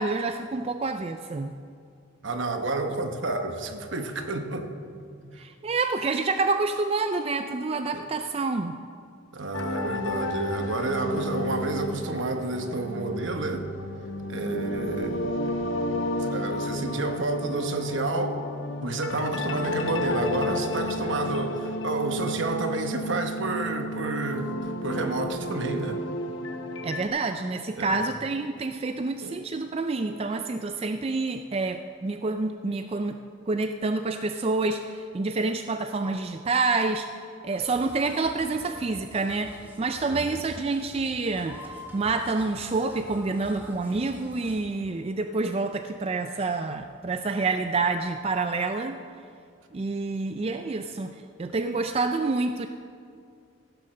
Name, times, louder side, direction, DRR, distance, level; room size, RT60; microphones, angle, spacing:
voice 1, 0.0-1.5 5.4-8.8 26.8-33.2 33.5-37.1 37.4-41.6 41.9-49.0 49.7-52.7, right 3 dB, 30° right, 7 dB, 0.3 m, -28 dB
voice 2, 2.2-4.7 5.2-5.4 7.9-8.0 9.3-13.7 14.3-15.6 16.2-18.4 18.8-26.0 27.8-28.0 29.2-29.4 40.1-40.3, right 2 dB, 70° right, 6 dB, 1.0 m, -30 dB
sound 1, 9.5-27.1, left 1 dB, 75° left, 0.9 m, -32 dB
sound 2, 37.5-44.6, equal, 10° right, 1.5 m, -46 dB
15.5 x 7.3 x 6.5 m, 2.4 s
head